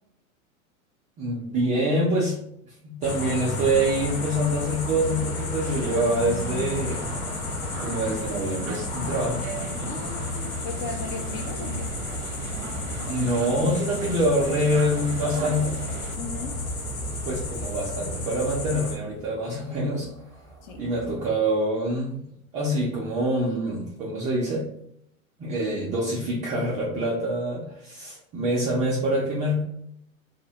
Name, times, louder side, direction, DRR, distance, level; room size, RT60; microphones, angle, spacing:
voice 1, 1.2-2.4 2.8-7.1 7.8-9.4 13.1-15.8 17.3-20.1 20.8-22.2 22.5-24.7 25.4-29.6, right 1 dB, 20° right, -4 dB, 0.3 m, -25 dB
sound 1, 3.0-19.0, left 3 dB, 75° left, 1.0 m, -32 dB
sound 2, 5.6-16.2, right 4 dB, 65° right, 0.6 m, -38 dB
sound 3, 6.7-21.3, right 4 dB, 5° left, 0.8 m, -43 dB
voice 2, 9.8-12.0 16.1-16.6 20.6-20.8, left 3 dB, 35° left, 4 dB, 0.5 m, -37 dB
2.6 x 2.1 x 3.9 m, 0.74 s
hypercardioid pair, 105°, 43 cm